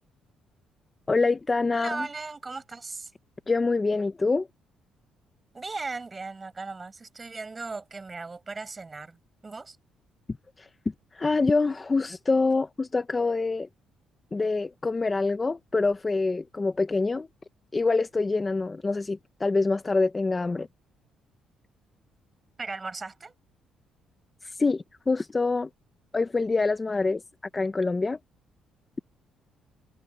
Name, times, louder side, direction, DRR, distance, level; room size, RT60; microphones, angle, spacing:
voice 1, 1.1-2.1 3.5-4.5 10.6-10.7 11.1-13.7 14.3-17.3 17.7-20.7 24.4-25.7 26.1-27.2 27.5-28.2, left 3 dB, 20° left, 0.8 m, -25 dB
voice 2, 1.7-3.1 5.5-9.8 22.6-23.3, right 3 dB, 20° right, 5.5 m, -37 dB
cardioid pair, 130°, 0 cm